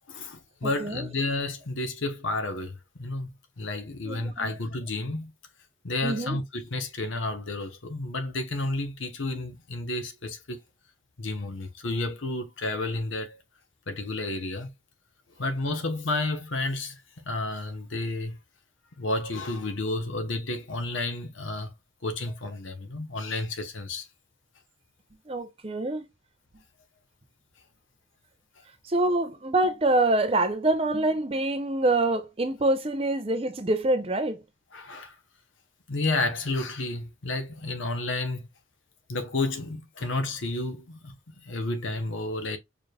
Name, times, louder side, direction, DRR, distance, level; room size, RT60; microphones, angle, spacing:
voice 1, 0.1-5.3 5.8-10.6 11.2-13.4 13.9-14.7 15.4-18.4 19.0-21.7 22.0-24.1 34.7-35.1 35.9-38.5 39.1-42.6, left 2 dB, 80° left, 1.0 m, -31 dB
voice 2, 0.6-1.1 4.0-4.5 6.0-6.4 25.3-26.1 28.8-34.4, right 2 dB, 30° right, 0.6 m, -25 dB
4.8 x 3.3 x 2.3 m
head